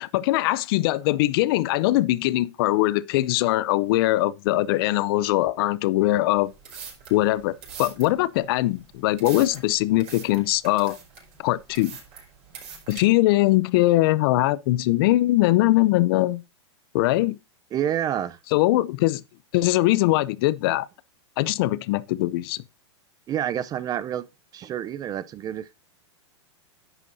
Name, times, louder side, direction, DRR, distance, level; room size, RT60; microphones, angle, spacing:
voice 1, 0.0-6.5 7.1-11.0 11.4-12.0 12.9-16.4 16.9-17.4 18.5-19.2 19.5-20.9 21.4-22.6, left 17 dB, 50° left, 0.6 m, -21 dB
sound 1, 6.4-13.0, right 6 dB, 40° right, 4.8 m, -43 dB
voice 2, 17.7-18.4 23.3-24.2 24.5-25.6, right 10 dB, 25° right, 0.5 m, -28 dB
11.0 x 8.3 x 2.7 m
hypercardioid pair, 120°, 15 cm